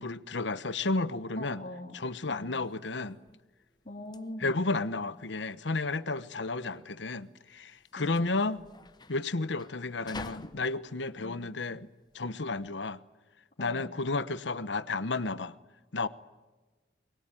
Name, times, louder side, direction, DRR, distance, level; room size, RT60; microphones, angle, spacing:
voice 1, 0.0-1.6 1.9-3.2 4.4-8.6 9.1-11.9 12.1-13.0 13.6-15.5 15.9-16.1, left 3 dB, 75° left, 1.1 m, -32 dB
voice 2, 1.3-2.0 2.3-2.6 3.8-4.6 8.0-8.5 11.2-11.4 13.6-13.8, left 1 dB, 40° left, 3.4 m, -43 dB
sound 1, 2.6-12.7, left 3 dB, 25° left, 0.9 m, -50 dB
24.0 x 21.5 x 9.1 m
head